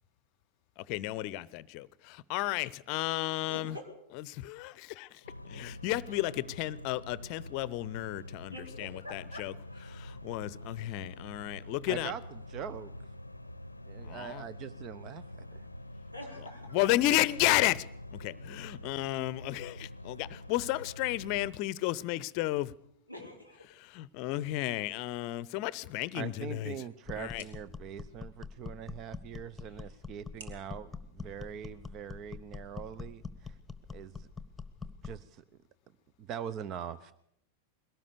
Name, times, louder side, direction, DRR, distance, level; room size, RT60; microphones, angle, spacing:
voice 1, 0.8-3.8 4.2-9.5 9.9-12.1 14.1-14.4 16.7-17.9 18.1-22.7 23.8-26.7 27.2-27.4, left 16 dB, 45° left, 0.7 m, -33 dB
voice 2, 3.5-3.9 8.5-9.5 16.1-16.8 23.1-23.6, left 1 dB, 85° right, 4.7 m, -45 dB
sound 1, 5.2-21.5, left 1 dB, 85° left, 0.7 m, -46 dB
voice 3, 11.9-12.9 13.9-15.7 26.1-33.6 33.9-34.3 35.0-35.4 36.2-37.1, right 8 dB, 35° right, 0.8 m, -42 dB
sound 2, 26.1-32.1, right 3 dB, 65° right, 3.3 m, -60 dB
sound 3, 27.1-35.3, left 4 dB, 10° left, 1.2 m, -44 dB
22.0 x 17.5 x 6.8 m
figure-of-eight pair, 90°, 0 cm